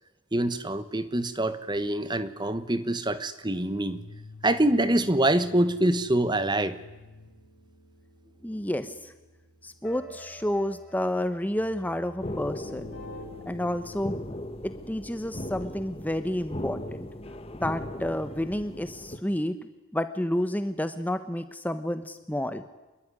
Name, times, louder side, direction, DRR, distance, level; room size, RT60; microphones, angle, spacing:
voice 1, 0.3-4.0 4.4-6.8, right 1 dB, 20° right, 13 dB, 1.2 m, -25 dB
sound 1, 3.9-14.0, left 3 dB, 50° left, 6.1 m, -48 dB
voice 2, 8.4-9.1 9.6-12.9 13.5-14.1 14.6-17.1 17.6-19.6 19.9-22.6, left 1 dB, 5° left, 10 dB, 0.9 m, -30 dB
sound 2, 12.2-19.2, left 1 dB, 25° left, 1.5 m, -38 dB
26.0 x 21.5 x 9.7 m, 1.2 s
head